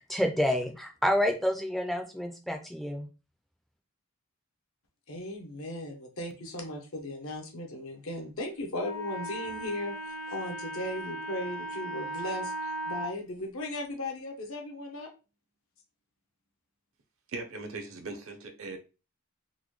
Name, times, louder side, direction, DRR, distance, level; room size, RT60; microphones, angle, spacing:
voice 1, 0.0-3.1, equal, ahead, 0.4 m, -28 dB
voice 2, 5.1-15.1, left 1 dB, 65° left, 0.8 m, -37 dB
Wind instrument woodwind instrument, 8.8-13.2, right 1 dB, 80° left, 0.5 m, -37 dB
voice 3, 17.3-18.8, right 3 dB, 65° right, 0.7 m, -39 dB
3.9 x 2.1 x 3.1 m
head